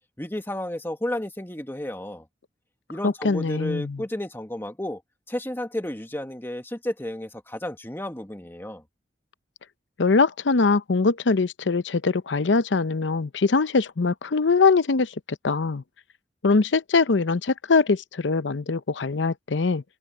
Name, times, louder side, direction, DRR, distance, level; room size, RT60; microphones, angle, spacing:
voice 1, 0.2-2.3 2.9-5.0 5.3-8.8, left 1 dB, 10° left, 1.6 m, -32 dB
voice 2, 3.0-4.0 10.0-15.1 15.4-15.8 16.4-19.8, left 4 dB, 85° left, 0.7 m, -22 dB
open air
head